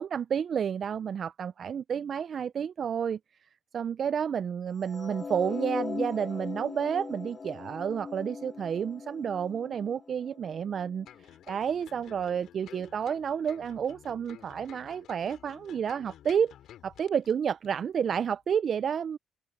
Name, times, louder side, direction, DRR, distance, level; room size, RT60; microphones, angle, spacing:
voice 1, 0.0-3.2 3.7-11.1 11.5-16.5 16.8-19.2, right 7 dB, 55° right, 0.3 m, -30 dB
sound 1, 4.8-11.1, left 4 dB, 35° left, 1.4 m, -39 dB
sound 2, 11.1-17.3 17.6-17.8, left 11 dB, 80° left, 3.1 m, -52 dB
open air
cardioid pair, 90°, 0 cm